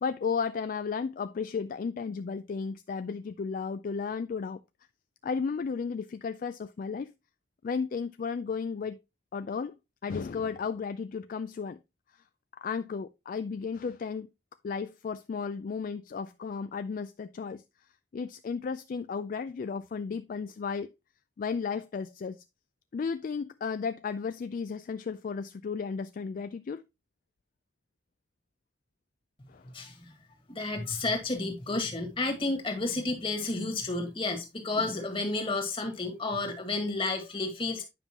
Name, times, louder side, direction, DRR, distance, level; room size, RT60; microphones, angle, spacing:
voice 1, 0.0-4.6 5.2-7.1 7.6-9.0 9.3-11.8 12.6-14.3 14.6-17.6 18.1-20.9 21.4-22.4 22.9-26.8 29.5-29.6, left 5 dB, 50° left, 0.3 m, -34 dB
voice 2, 29.7-30.1 30.5-37.8, left 3 dB, 30° left, 1.8 m, -31 dB
9.4 x 5.3 x 2.9 m
head